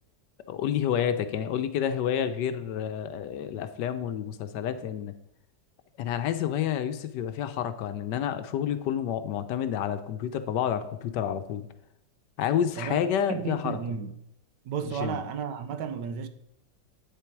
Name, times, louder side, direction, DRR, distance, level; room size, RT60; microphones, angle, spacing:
voice 1, 0.5-5.1 6.0-11.7 12.4-13.8 15.0-15.2, left 9 dB, 75° left, 1.2 m, -29 dB
voice 2, 12.8-14.1 14.6-16.3, right 7 dB, 75° right, 1.3 m, -33 dB
8.5 x 6.9 x 4.6 m
omnidirectional pair, 2.0 m